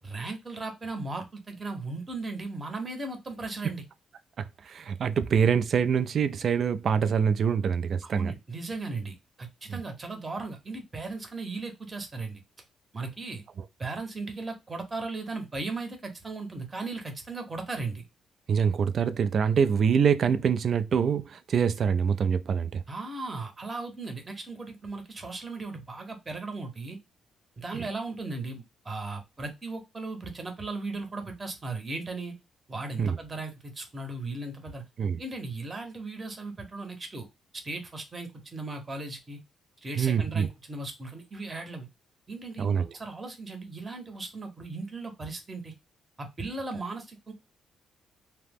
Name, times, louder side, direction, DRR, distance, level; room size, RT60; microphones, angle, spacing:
voice 1, 0.0-3.8 8.0-12.4 12.9-13.4 13.8-18.1 22.9-27.0 27.6-32.3 32.7-34.8 35.2-37.3 37.6-39.4 39.8-41.9 42.3-45.7 46.2-47.3, right 3 dB, 25° right, 0.8 m, -37 dB
voice 2, 4.4-8.3 9.7-9.8 18.5-22.8 33.0-33.2 35.0-35.2 40.0-40.5 42.6-42.9, right 7 dB, 55° right, 0.3 m, -25 dB
2.8 x 2.0 x 3.4 m
cardioid pair, 90°, 0 cm